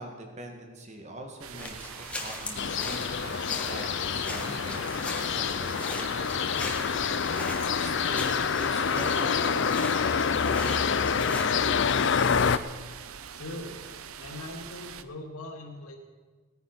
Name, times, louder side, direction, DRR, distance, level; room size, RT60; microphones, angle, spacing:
voice 1, 0.0-7.0 7.4-11.9, right 1 dB, 30° right, 3 dB, 1.8 m, -43 dB
sound 1, 1.4-15.0, right 7 dB, 75° right, 0.7 m, -43 dB
sound 2, 1.6-11.4, left 2 dB, 5° left, 1.4 m, -40 dB
sound 3, 2.6-12.6, left 6 dB, 55° left, 0.5 m, -27 dB
voice 2, 13.3-13.8 14.2-16.0, left 2 dB, 85° left, 1 dB, 2.8 m, -40 dB
18.0 x 9.5 x 6.0 m, 1.4 s
head